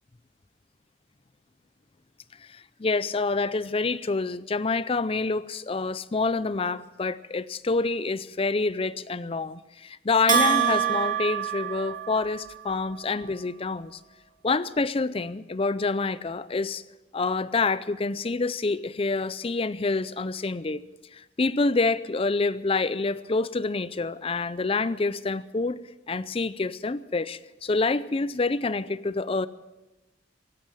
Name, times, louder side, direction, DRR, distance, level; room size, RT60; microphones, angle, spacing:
voice 1, 2.5-14.0 14.4-16.8 17.1-20.8 21.1-25.8 26.1-29.5, left 3 dB, 30° left, 16 dB, 0.5 m, -27 dB
Bell, 10.3-12.4, right 8 dB, 45° right, 2.9 m, -25 dB
16.5 x 12.0 x 7.3 m, 1.1 s
head